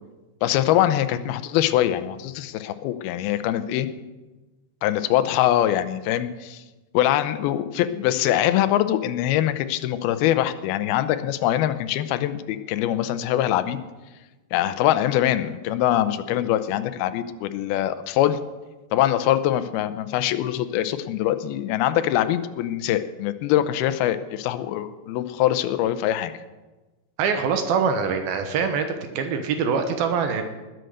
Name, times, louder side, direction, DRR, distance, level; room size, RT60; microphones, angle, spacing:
voice 1, 0.4-3.9 4.8-6.6 6.9-13.8 14.5-18.4 18.9-26.3, left 12 dB, 80° left, 11 dB, 2.5 m, -23 dB
voice 2, 27.2-28.9 29.1-30.4, right 6 dB, 70° right, 6 dB, 2.8 m, -23 dB
20.5 x 7.9 x 6.6 m, 1.2 s
omnidirectional pair, 4.7 m